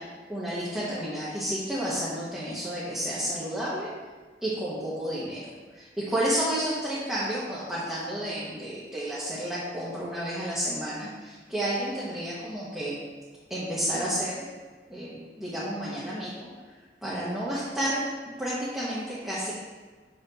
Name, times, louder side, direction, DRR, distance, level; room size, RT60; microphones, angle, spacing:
voice 1, 0.3-3.9 4.4-5.4 5.7-13.0 13.5-14.5 14.9-16.5 17.0-18.0 18.4-19.5, right 1 dB, 5° right, -9 dB, 1.0 m, -31 dB
6.5 x 5.4 x 2.8 m, 1.4 s
head